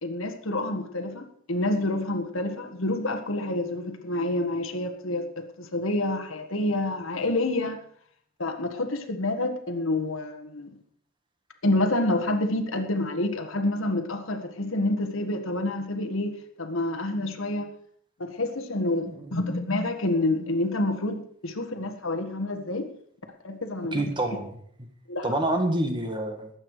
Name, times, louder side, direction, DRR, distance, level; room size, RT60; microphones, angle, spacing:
voice 1, 0.0-7.8 8.4-10.7 11.6-17.7 18.2-22.9 23.4-24.4 25.1-25.2, left 2 dB, 70° left, 6 dB, 1.7 m, -28 dB
voice 2, 19.1-19.4 23.9-24.9 25.2-26.5, right 1 dB, 25° right, 5 dB, 1.8 m, -28 dB
20.5 x 8.6 x 5.0 m, 0.63 s
head